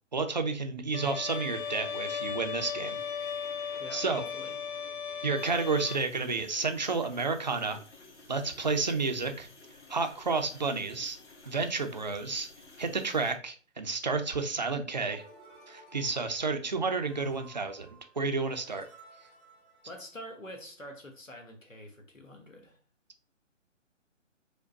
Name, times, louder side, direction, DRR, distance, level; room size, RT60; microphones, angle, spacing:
voice 1, 0.1-3.0 3.7-4.2 5.2-7.8 8.3-9.5 9.9-11.2 11.5-12.5 12.8-15.2 15.7-17.9 18.2-18.9, right 4 dB, 35° right, 6 dB, 0.5 m, -31 dB
Bowed string instrument, 0.9-6.0, left 7 dB, 45° left, 0.5 m, -36 dB
voice 2, 3.8-4.6 19.8-22.8, equal, 85° left, 3 dB, 1.5 m, -46 dB
sound 1, 5.4-13.4, left 3 dB, 60° left, 1.3 m, -53 dB
sound 2, 15.0-20.5, right 2 dB, 5° left, 0.7 m, -56 dB
5.1 x 2.2 x 3.8 m, 0.42 s
figure-of-eight pair, 145°, 38 cm